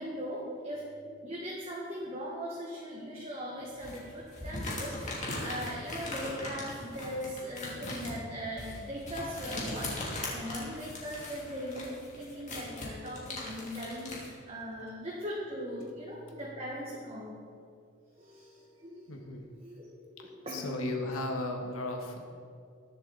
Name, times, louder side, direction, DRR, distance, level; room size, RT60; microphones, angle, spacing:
voice 1, 0.0-17.4 18.2-19.1 19.6-19.9 20.2-20.9, equal, 30° right, -5 dB, 1.6 m, -39 dB
sound 1, 3.8-14.3, left 2 dB, 35° left, 2.8 m, -39 dB
voice 2, 19.1-19.4 20.2-20.3 20.5-22.2, left 2 dB, 80° left, 2 dB, 1.6 m, -35 dB
21.5 x 7.2 x 4.1 m, 2.3 s
head